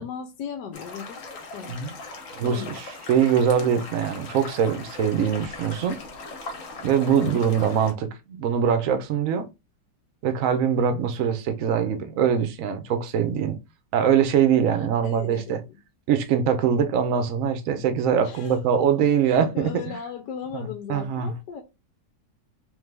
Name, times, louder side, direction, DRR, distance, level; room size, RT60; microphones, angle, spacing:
voice 1, 0.0-1.8 2.4-2.8 7.2-7.4 15.0-15.8 18.2-18.6 19.2-21.6, left 7 dB, 75° left, 1.2 m, -37 dB
sound 1, 0.7-7.9, left 3 dB, 50° left, 1.2 m, -39 dB
voice 2, 2.3-6.0 6.8-9.5 10.2-13.6 13.9-15.6 16.1-20.0 20.5-21.3, right 8 dB, 60° right, 0.9 m, -23 dB
3.7 x 3.1 x 3.3 m
omnidirectional pair, 1.9 m